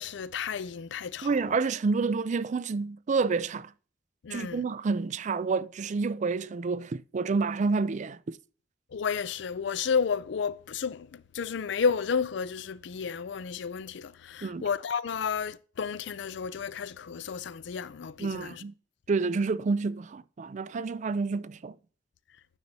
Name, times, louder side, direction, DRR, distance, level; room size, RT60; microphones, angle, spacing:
voice 1, 0.0-1.6 4.2-4.7 8.9-18.6, left 6 dB, 65° left, 0.4 m, -32 dB
voice 2, 1.2-3.7 4.3-8.4 14.4-14.7 18.2-18.7 19.1-21.8, right 4 dB, 40° right, 0.4 m, -29 dB
9.7 x 6.6 x 2.8 m
head